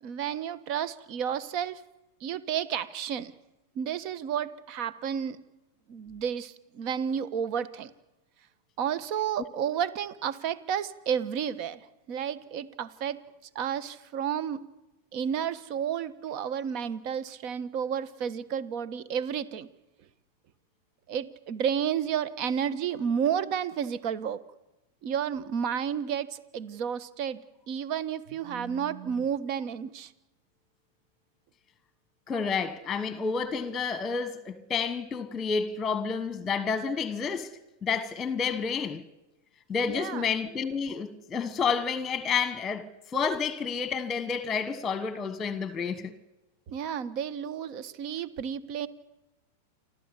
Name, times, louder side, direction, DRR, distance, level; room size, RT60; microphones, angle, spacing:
voice 1, 0.0-1.8 2.2-3.3 3.7-5.4 5.9-7.9 8.8-13.2 13.5-14.6 15.1-19.7 21.1-24.4 25.0-30.1 39.9-40.3 46.7-48.9, right 8 dB, 50° right, 1.4 m, -31 dB
voice 2, 32.3-37.5 37.8-39.0 39.7-46.1, left 5 dB, 15° left, 1.4 m, -30 dB
28.5 x 13.0 x 9.9 m
hypercardioid pair, 125°, 0 cm